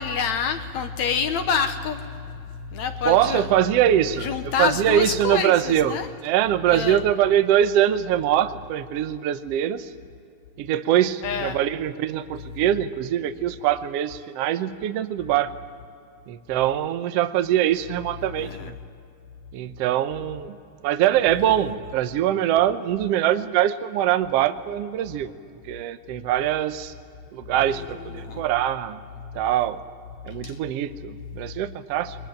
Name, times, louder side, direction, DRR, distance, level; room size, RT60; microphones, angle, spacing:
voice 1, 0.0-3.5 4.1-6.1 6.7-7.1 11.2-11.6 18.4-18.7 21.8-21.9 27.7-27.9 28.1-28.4 30.4-30.6, left 6 dB, 65° left, 7 dB, 2.0 m, -27 dB
voice 2, 3.0-4.3 4.6-6.0 6.2-9.9 10.6-15.5 16.3-18.8 19.5-20.6 20.8-25.3 25.7-26.9 27.3-29.0 29.3-29.8 30.2-32.2, right 11 dB, 75° right, 10 dB, 1.4 m, -23 dB
22.0 x 21.0 x 8.8 m, 2.5 s
omnidirectional pair, 3.9 m